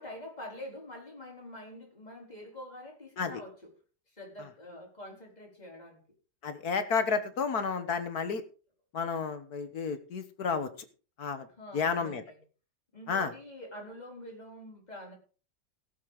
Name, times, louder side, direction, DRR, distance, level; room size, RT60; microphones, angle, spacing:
voice 1, 0.0-3.7 4.1-6.0 11.5-12.4 12.9-15.1, left 1 dB, 20° left, -1 dB, 4.7 m, -46 dB
voice 2, 6.4-8.4 8.9-10.7 11.2-11.5 11.7-12.2 13.1-13.3, left 5 dB, 55° left, 10 dB, 1.6 m, -31 dB
17.0 x 7.5 x 5.0 m, 0.37 s
omnidirectional pair, 2.1 m